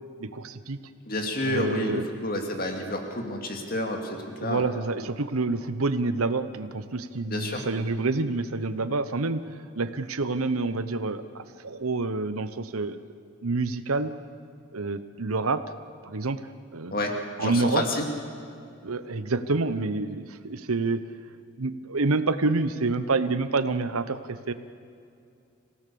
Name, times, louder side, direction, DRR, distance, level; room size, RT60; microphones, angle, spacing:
voice 1, 0.2-0.8 1.4-2.0 4.4-13.0 13.4-14.1 14.7-15.6 16.0-16.4 16.7-16.9 17.4-17.8 18.8-21.0 21.6-24.5, right 3 dB, 90° right, 12 dB, 1.0 m, -28 dB
voice 2, 1.1-4.6 7.3-7.6 16.9-17.1 17.4-18.1, left 1 dB, 45° left, 3 dB, 2.5 m, -29 dB
27.0 x 17.0 x 7.0 m, 2.6 s
head